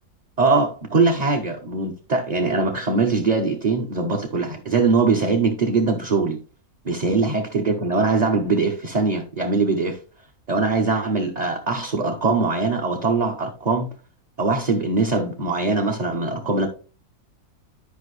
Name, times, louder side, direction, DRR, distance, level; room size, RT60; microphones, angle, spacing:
voice 1, 0.4-6.4 6.8-10.0 10.5-13.9 14.4-16.7, right 4 dB, 35° right, 0.9 m, -22 dB
10.5 x 5.3 x 3.2 m
omnidirectional pair, 1.5 m